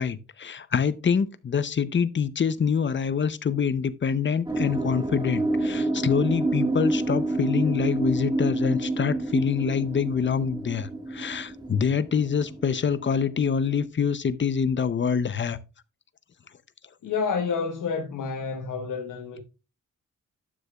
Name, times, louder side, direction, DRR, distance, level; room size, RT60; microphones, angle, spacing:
voice 1, 0.0-15.6, left 6 dB, 40° left, 0.7 m, -25 dB
sound 1, 4.5-13.8, right 2 dB, 15° right, 1.6 m, -28 dB
voice 2, 17.0-19.4, left 5 dB, 85° left, 1.2 m, -29 dB
11.5 x 6.6 x 2.3 m
cardioid pair, 95°, 31 cm